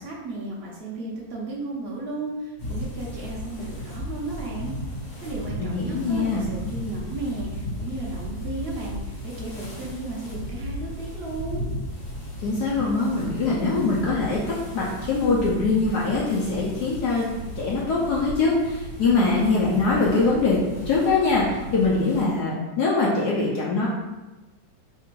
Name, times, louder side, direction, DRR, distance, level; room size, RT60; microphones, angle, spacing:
voice 1, 0.0-4.7 5.2-11.7, right 2 dB, 80° right, -4 dB, 0.5 m, -34 dB
sound 1, 2.6-22.2, equal, 45° left, 1.7 m, -35 dB
voice 2, 5.6-6.4 12.4-17.3 17.6-20.6 20.9-23.9, left 3 dB, 65° left, -5 dB, 1.1 m, -23 dB
3.6 x 2.5 x 4.5 m, 1.1 s
omnidirectional pair, 2.2 m